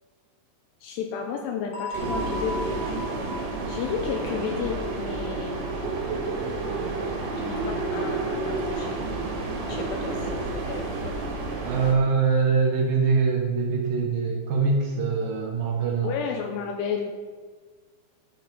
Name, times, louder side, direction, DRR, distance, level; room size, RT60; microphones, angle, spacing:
voice 1, 0.8-3.3 3.6-5.6 7.4-9.0 9.7-11.2 16.0-17.1, left 6 dB, 80° left, 2 dB, 2.6 m, -32 dB
sound 1, 1.7-6.4, equal, 55° left, 1.5 m, -38 dB
sound 2, 1.9-11.9, right 3 dB, 90° right, 4.1 m, -30 dB
voice 2, 11.6-16.1, right 5 dB, 65° right, 0 dB, 2.4 m, -23 dB
11.0 x 5.4 x 5.3 m, 1.5 s
omnidirectional pair, 5.1 m